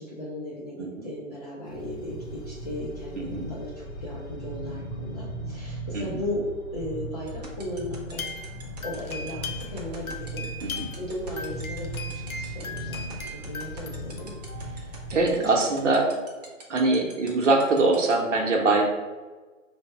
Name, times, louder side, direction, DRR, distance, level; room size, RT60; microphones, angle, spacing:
voice 1, 0.0-6.5 6.7-8.3 8.8-15.0 15.4-15.6, left 1 dB, 30° left, -6 dB, 0.4 m, -37 dB
sound 1, 1.7-15.4, equal, 55° left, 0.8 m, -38 dB
voice 2, 3.2-3.5 5.9-6.2 10.6-10.9 15.1-16.1 16.7-18.8, right 3 dB, 60° right, 0 dB, 0.8 m, -23 dB
sound 2, 7.3-18.1, right 4 dB, 30° right, 0.5 m, -44 dB
sound 3, 8.1-9.8 10.1-15.1 16.0-16.1 16.5-16.6, left 3 dB, 90° left, 0.7 m, -39 dB
3.3 x 2.0 x 4.2 m, 1.3 s
figure-of-eight pair, 140°, 40 cm